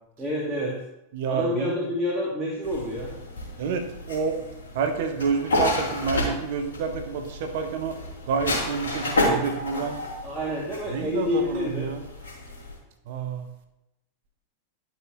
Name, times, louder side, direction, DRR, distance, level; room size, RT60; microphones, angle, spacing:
voice 1, 0.2-0.8 1.3-3.1 10.2-11.9, left 1 dB, 10° right, -6 dB, 1.9 m, -28 dB
voice 2, 1.1-1.9 3.6-4.4 4.7-8.0 8.3-10.0 10.9-12.0 13.1-13.5, right 5 dB, 50° right, 7 dB, 1.0 m, -28 dB
sound 1, 2.6-12.8, left 1 dB, 65° left, 3.3 m, -31 dB
12.0 x 5.9 x 3.0 m, 0.90 s
figure-of-eight pair, 90°, 0 cm